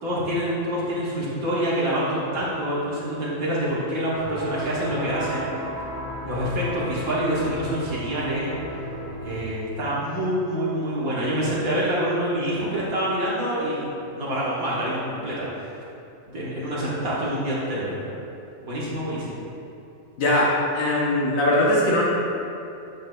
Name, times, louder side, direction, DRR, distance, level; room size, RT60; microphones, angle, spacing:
voice 1, 0.0-5.5 6.2-8.5 9.2-15.7 16.3-18.1 18.6-19.4, right 1 dB, 85° right, -8 dB, 1.8 m, -26 dB
sound 1, 4.1-9.4, equal, 55° right, 1.4 m, -34 dB
voice 2, 20.2-22.0, left 1 dB, 75° left, -5 dB, 1.3 m, -20 dB
8.6 x 6.7 x 2.2 m, 2.7 s
omnidirectional pair, 1.4 m